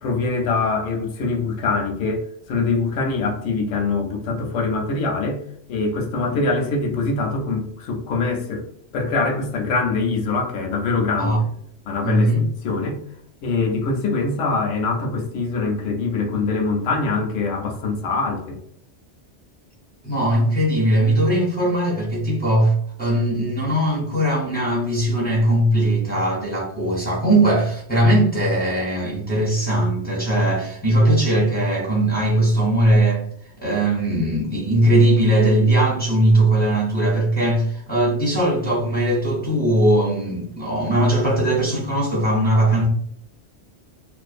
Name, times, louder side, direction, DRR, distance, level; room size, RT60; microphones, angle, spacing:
voice 1, 0.0-2.2 2.5-5.4 5.7-8.6 8.9-11.5 11.9-12.3 12.6-13.0 13.4-18.6, left 3 dB, 80° left, 0.9 m, -23 dB
voice 2, 12.0-12.4 20.0-33.2 33.6-42.9, right 1 dB, 10° left, 0.5 m, -19 dB
2.4 x 2.2 x 2.4 m
omnidirectional pair, 1.2 m